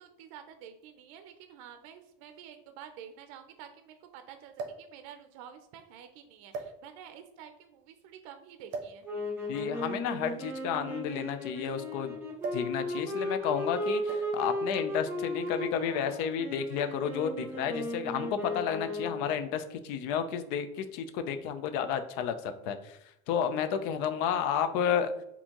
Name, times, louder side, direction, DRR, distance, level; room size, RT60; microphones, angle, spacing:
voice 1, 0.0-9.1, right 9 dB, 80° right, 8 dB, 0.5 m, -49 dB
sound 1, 0.8-0.9 2.0-2.1 2.4-2.5 4.5-4.9 5.8-6.0 6.5-7.2 8.7-9.0 10.2-11.8 12.4-12.8 13.0-13.3 14.1-14.5 15.4-15.7, right 3 dB, 50° right, 0.7 m, -41 dB
sound 2, 9.0-19.4, left 1 dB, 15° right, 0.8 m, -35 dB
voice 2, 9.5-12.2 12.5-23.0 23.3-25.1, left 8 dB, 60° left, 9 dB, 0.5 m, -31 dB
4.4 x 2.7 x 2.9 m, 0.80 s
cardioid pair, 170°, 17 cm